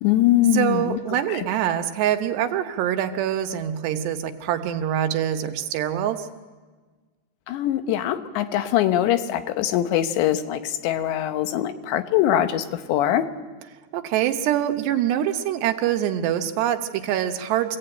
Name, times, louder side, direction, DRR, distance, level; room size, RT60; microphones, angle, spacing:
voice 1, 0.0-1.0 1.3-1.4 7.5-13.3, left 12 dB, 85° left, 9 dB, 3.4 m, -22 dB
voice 2, 0.5-6.3 13.9-17.8, right 10 dB, 80° right, 7 dB, 3.2 m, -24 dB
25.5 x 16.5 x 8.9 m, 1.4 s
omnidirectional pair, 4.9 m